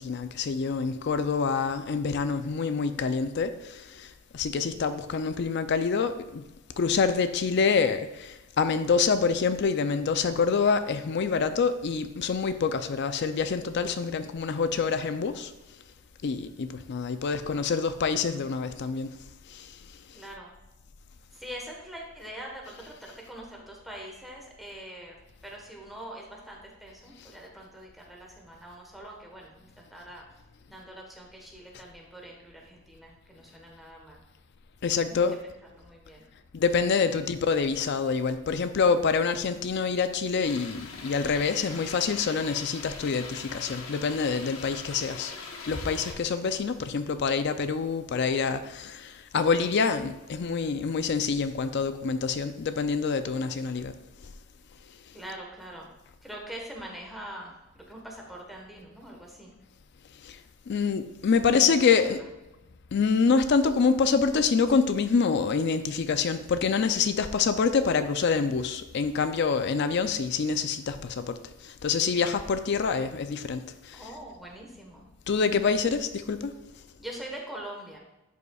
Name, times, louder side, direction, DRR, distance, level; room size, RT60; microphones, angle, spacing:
voice 1, 0.0-6.4 6.8-15.5 16.2-19.2 19.5-19.8 20.1-20.3 27.2-27.3 34.8-35.4 36.5-45.3 45.7-54.0 60.2-60.4 60.7-62.2 62.9-74.1 75.3-76.5, left 5 dB, 50° left, 0.4 m, -26 dB
voice 2, 20.1-20.5 21.3-25.2 25.4-30.3 30.7-34.2 35.1-36.3 37.1-37.2 55.1-55.9 56.2-59.5 61.4-62.2 73.9-75.1 77.0-78.0, right 1 dB, ahead, 1.2 m, -43 dB
sound 1, 40.4-46.1, left 4 dB, 70° left, 1.0 m, -41 dB
10.5 x 5.5 x 2.3 m
head